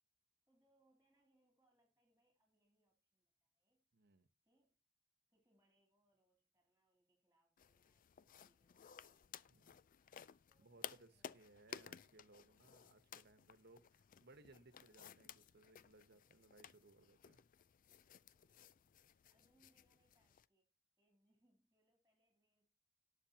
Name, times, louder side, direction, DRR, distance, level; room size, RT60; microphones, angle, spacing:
voice 1, 0.5-3.8 4.4-4.8 5.3-9.5 10.5-11.9 18.4-20.7 21.0-22.7, right 1 dB, 10° right, 3.1 m, -81 dB
voice 2, 3.9-4.3 9.5-9.8 10.6-17.4, right 2 dB, 55° right, 1.2 m, -66 dB
sound 1, 7.6-20.5, left 8 dB, 45° left, 0.4 m, -57 dB
18.5 x 6.9 x 2.9 m
head